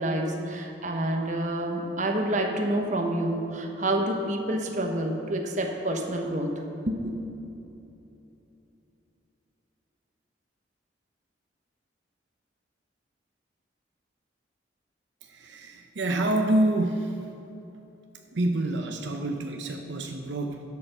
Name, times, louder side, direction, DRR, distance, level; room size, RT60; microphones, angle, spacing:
voice 1, 0.0-7.2, right 1 dB, 40° right, 3 dB, 1.0 m, -28 dB
voice 2, 15.2-17.1 18.3-20.6, right 1 dB, 70° right, 4 dB, 0.7 m, -27 dB
11.0 x 6.8 x 6.7 m, 2.9 s
head